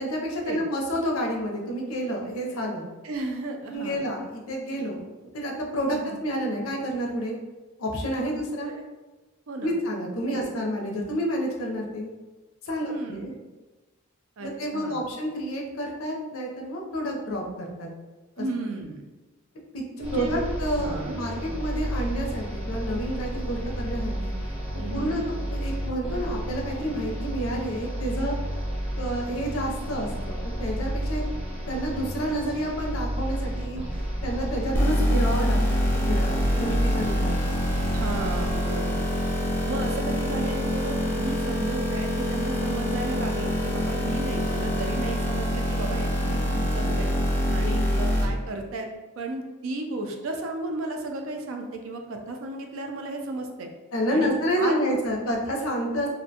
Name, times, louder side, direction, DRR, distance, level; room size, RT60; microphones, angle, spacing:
voice 1, 0.0-2.9 3.7-5.1 5.3-7.4 7.8-8.7 9.6-12.1 12.6-13.3 14.4-17.9 18.4-18.5 19.7-19.8 20.1-24.3 24.9-28.4 29.0-31.2 31.7-33.8 34.2-37.3 47.6-48.0 53.9-56.1, equal, 85° left, 0 dB, 0.5 m, -29 dB
voice 2, 3.0-4.1 5.9-6.2 8.6-8.8 9.5-9.8 10.3-10.5 12.8-13.3 14.4-15.1 18.4-19.1 20.0-20.4 20.8-21.2 24.8-25.2 35.4-35.6 37.9-39.0 39.7-47.1 47.5-48.9 49.2-53.7 54.1-55.0, right 2 dB, 70° right, 3 dB, 0.4 m, -34 dB
sound 1, 20.0-38.6, equal, 5° right, 0.7 m, -32 dB
sound 2, 34.7-48.3, equal, 10° left, 0.3 m, -25 dB
2.4 x 2.1 x 2.7 m, 1.2 s
head